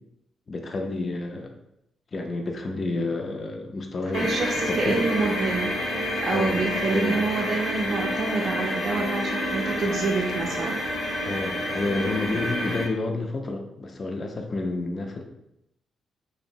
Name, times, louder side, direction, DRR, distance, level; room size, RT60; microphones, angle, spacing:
voice 1, 0.5-1.5 2.1-4.3 4.7-5.2 6.3-7.2 11.2-15.2, left 2 dB, 40° left, 3 dB, 0.4 m, -29 dB
sound 1, 4.1-12.9, equal, 65° left, 0.7 m, -28 dB
voice 2, 4.1-5.7 6.2-10.8, right 3 dB, 50° right, 1 dB, 0.4 m, -27 dB
2.8 x 2.0 x 2.6 m, 0.82 s
cardioid pair, 80°, 0 cm